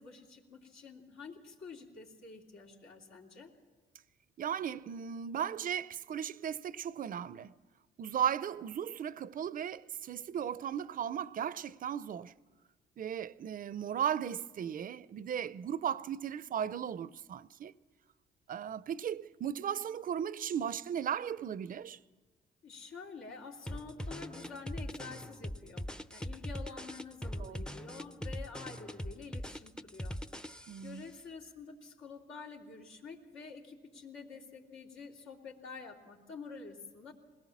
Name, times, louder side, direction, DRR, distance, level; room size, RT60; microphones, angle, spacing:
voice 1, 0.0-3.5 22.6-30.2 30.8-37.1, left 5 dB, 85° left, 3.1 m, -48 dB
voice 2, 4.4-7.5 8.0-12.3 13.0-17.7 18.5-22.0 27.4-27.6 30.7-31.1, right 8 dB, 45° right, 0.5 m, -36 dB
sound 1, 23.7-31.0, equal, 5° left, 0.5 m, -41 dB
21.5 x 18.0 x 7.3 m
cardioid pair, 90°, 20 cm